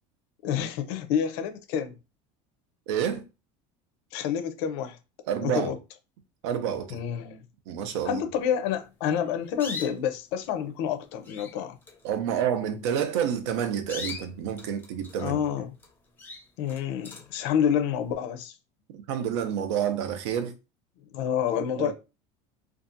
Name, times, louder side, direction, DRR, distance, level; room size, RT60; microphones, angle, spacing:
voice 1, 0.4-1.9 4.1-5.0 5.4-5.8 6.9-7.4 8.0-11.8 15.2-15.7 16.6-18.6 21.1-21.9, left 8 dB, 70° left, 0.5 m, -28 dB
voice 2, 2.9-3.2 5.3-5.7 6.4-7.0 7.7-8.2 12.0-15.4 18.9-20.5 21.8-21.9, right 9 dB, 90° right, 0.6 m, -29 dB
sound 1, 9.1-10.2 10.9-11.0 11.2-11.6 11.8-12.1 13.0-13.2 13.7-15.4 15.8-15.9 16.2-17.4, left 4 dB, 15° left, 0.5 m, -40 dB
2.6 x 2.3 x 2.6 m
cardioid pair, 160°, 14 cm